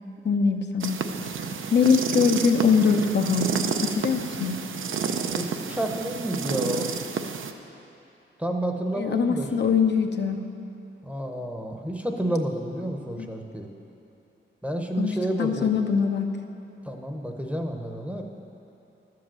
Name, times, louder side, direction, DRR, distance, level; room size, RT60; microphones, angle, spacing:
voice 1, 0.2-1.0 1.7-3.5 3.8-4.5 8.9-10.4 13.2-13.3 15.0-16.3, left 6 dB, 55° left, 4 dB, 0.7 m, -22 dB
sound 1, 0.8-7.5, right 6 dB, 70° right, 0.6 m, -30 dB
voice 2, 5.2-6.9 8.4-9.5 11.0-13.7 14.6-15.7 16.8-18.2, right 1 dB, 5° right, 3 dB, 0.8 m, -30 dB
12.0 x 7.7 x 7.6 m, 2.9 s
wide cardioid pair, 150°, 21 cm